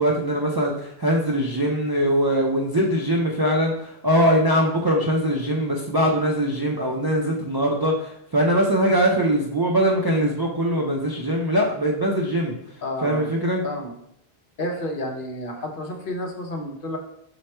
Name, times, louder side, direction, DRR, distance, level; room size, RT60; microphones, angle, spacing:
voice 1, 0.0-12.5 13.0-13.6, equal, 40° right, -2 dB, 0.3 m, -22 dB
voice 2, 12.8-13.3 13.6-13.9 14.6-17.0, left 1 dB, 60° left, 2 dB, 0.8 m, -30 dB
4.7 x 2.2 x 4.3 m, 0.74 s
omnidirectional pair, 1.0 m